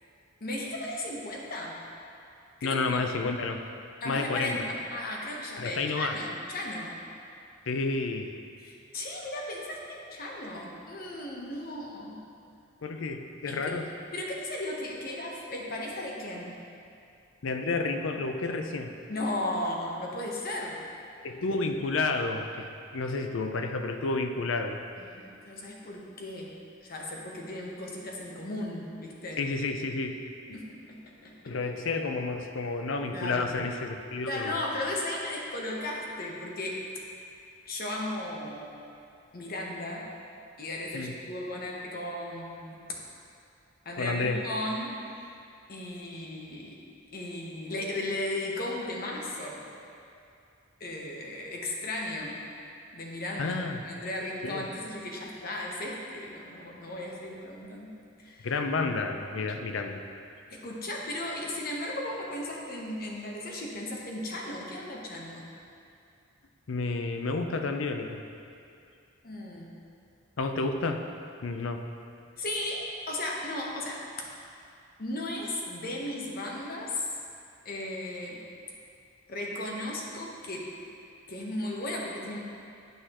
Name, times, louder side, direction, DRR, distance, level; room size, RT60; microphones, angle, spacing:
voice 1, 0.4-1.8 2.6-3.0 4.0-4.6 4.9-6.9 8.6-12.2 13.5-13.7 14.1-16.6 19.1-20.8 25.0-26.6 26.8-29.4 30.5-31.5 33.1-33.6 34.3-36.8 37.7-38.7 39.3-40.1 40.6-42.8 43.8-44.9 45.7-46.8 47.1-49.7 50.8-52.4 52.9-53.5 53.8-57.9 58.2-58.5 60.5-65.4 69.2-69.7 72.4-74.0 75.0-77.0 77.6-78.4 79.3-80.7 81.3-82.4, left 1 dB, 50° left, -1 dB, 1.0 m, -35 dB
voice 2, 2.6-3.6 4.0-4.6 5.6-6.1 7.7-8.3 12.8-13.9 17.4-18.9 21.2-24.8 29.4-30.2 31.4-34.6 40.9-41.1 44.0-44.4 53.4-53.8 54.4-54.7 58.4-60.0 66.7-68.2 70.4-71.0 71.4-71.8, left 3 dB, 85° left, 6 dB, 0.5 m, -30 dB
9.1 x 6.5 x 3.0 m, 2.5 s
head